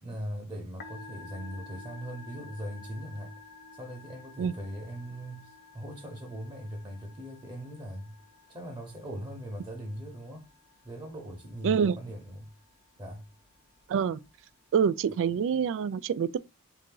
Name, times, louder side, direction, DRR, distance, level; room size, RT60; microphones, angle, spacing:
voice 1, 0.0-3.4 3.7-8.2 8.5-10.5 10.8-12.5 13.0-13.3, equal, 20° right, 1.0 m, -40 dB
Musical instrument, 0.7-15.4, left 4 dB, 50° left, 0.7 m, -52 dB
voice 2, 11.6-12.0 13.9-14.2 14.7-16.4, right 7 dB, 60° right, 0.3 m, -26 dB
3.8 x 2.7 x 3.7 m
head